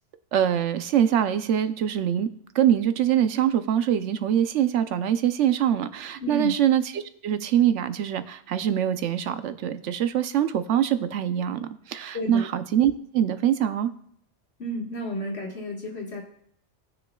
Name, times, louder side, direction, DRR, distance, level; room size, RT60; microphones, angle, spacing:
voice 1, 0.3-2.3 2.5-13.9, right 10 dB, 85° right, 11 dB, 1.0 m, -24 dB
voice 2, 6.2-6.5 12.1-12.5 14.6-16.2, left 1 dB, 65° left, -1 dB, 2.0 m, -31 dB
18.0 x 6.6 x 2.3 m, 0.67 s
omnidirectional pair, 1.2 m